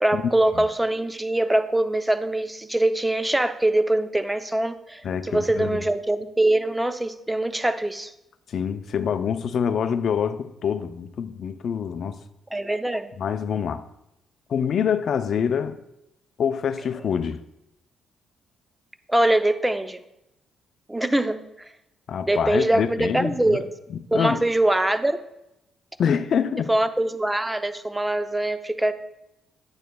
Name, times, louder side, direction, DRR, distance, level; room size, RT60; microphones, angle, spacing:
voice 1, 0.0-8.1 12.5-13.1 19.1-20.0 20.9-21.4 22.3-23.7 24.1-25.2 26.7-28.9, right 1 dB, 10° right, 0.6 m, -23 dB
voice 2, 5.0-5.8 8.5-12.2 13.2-13.9 14.5-15.8 16.4-17.4 22.1-23.7 23.9-24.4 26.0-26.7, left 7 dB, 60° left, 0.5 m, -26 dB
10.5 x 8.8 x 2.3 m
cardioid pair, 90°, 0 cm